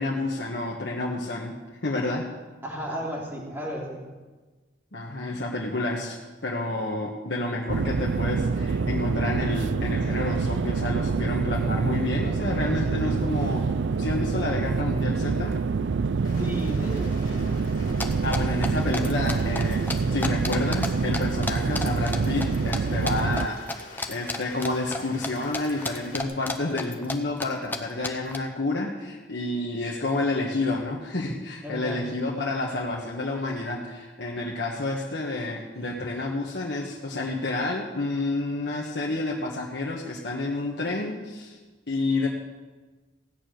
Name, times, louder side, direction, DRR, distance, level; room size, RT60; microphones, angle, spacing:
voice 1, 0.0-2.3 4.9-13.7 14.0-15.6 18.2-41.6 41.9-42.3, left 2 dB, 70° left, -2 dB, 1.4 m, -29 dB
voice 2, 2.6-4.0 16.4-17.4 31.6-32.1, equal, 15° right, -4 dB, 3.1 m, -33 dB
sound 1, 7.7-23.5, right 4 dB, 80° right, 0.4 m, -26 dB
Rain, 16.2-26.2, left 3 dB, 45° left, 3.2 m, -46 dB
sound 2, 18.0-20.9 21.1-22.8 23.1-23.4 23.7-25.3 25.5-27.1 27.4-27.5 27.7-27.8 28.0-28.4, left 2 dB, 10° left, 0.8 m, -31 dB
16.5 x 6.9 x 9.2 m, 1.3 s
head